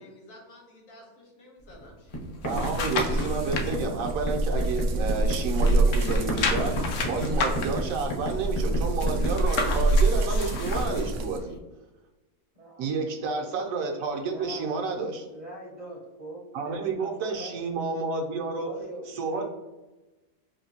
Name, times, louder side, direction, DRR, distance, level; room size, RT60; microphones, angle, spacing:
voice 1, 0.0-2.4, left 1 dB, 65° left, 0 dB, 1.3 m, -52 dB
sound 1, 1.7-1.8 2.1-9.3, equal, 30° left, 0.6 m, -33 dB
sound 2, 2.1-3.7 4.2-5.3 5.6-11.1 11.6-11.7, left 4 dB, 80° left, 1.1 m, -32 dB
voice 2, 2.4-11.6 12.8-15.3 16.5-18.7 19.1-19.5, right 4 dB, 70° right, 3 dB, 0.9 m, -30 dB
sound 3, 2.5-11.4, right 2 dB, 90° right, 0.5 m, -27 dB
voice 3, 12.5-13.1 14.2-14.7 15.2-17.6 18.4-19.5, right 1 dB, 40° right, -4 dB, 0.6 m, -43 dB
4.3 x 2.6 x 2.7 m, 1.1 s
omnidirectional pair, 1.6 m